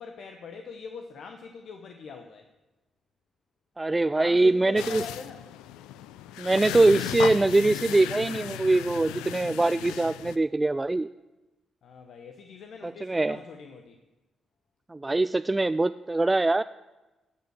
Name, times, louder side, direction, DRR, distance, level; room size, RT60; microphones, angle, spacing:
voice 1, 0.0-2.5 4.2-5.4 11.8-14.0, left 5 dB, 70° left, 5 dB, 0.8 m, -43 dB
voice 2, 3.8-5.0 6.4-11.1 12.8-13.4 14.9-16.6, right 2 dB, 25° right, 13 dB, 0.3 m, -23 dB
sound 1, 4.8-10.4, left 12 dB, 85° left, 0.4 m, -36 dB
13.0 x 5.6 x 7.9 m, 1.1 s
supercardioid pair, 50°, 0 cm